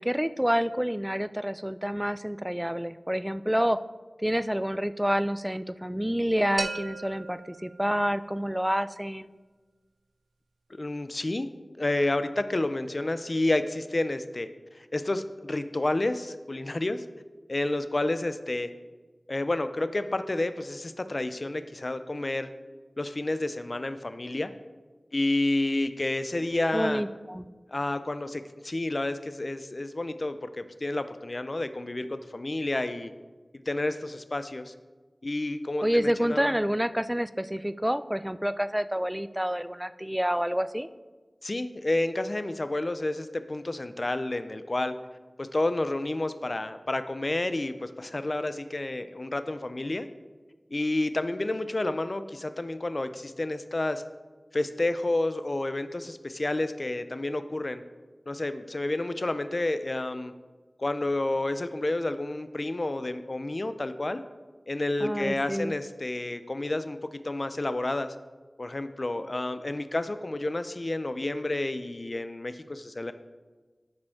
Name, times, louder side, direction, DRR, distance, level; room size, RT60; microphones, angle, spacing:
voice 1, 0.0-3.8 4.2-9.3 26.7-27.4 35.8-40.9 65.0-65.7, equal, 10° right, 13 dB, 0.3 m, -28 dB
sound 1, 6.6-8.4, right 3 dB, 80° right, 0.4 m, -37 dB
voice 2, 10.8-11.5 11.8-14.5 14.8-17.0 17.5-18.7 19.3-22.5 23.0-24.5 25.1-27.0 27.7-33.1 33.5-34.7 35.2-36.6 41.4-44.9 45.4-50.1 50.7-54.0 54.5-57.8 58.3-60.3 60.8-64.2 64.7-68.1 68.6-73.1, left 2 dB, 55° left, 11 dB, 0.4 m, -30 dB
12.0 x 5.0 x 3.6 m, 1.3 s
wide cardioid pair, 40°, 0 cm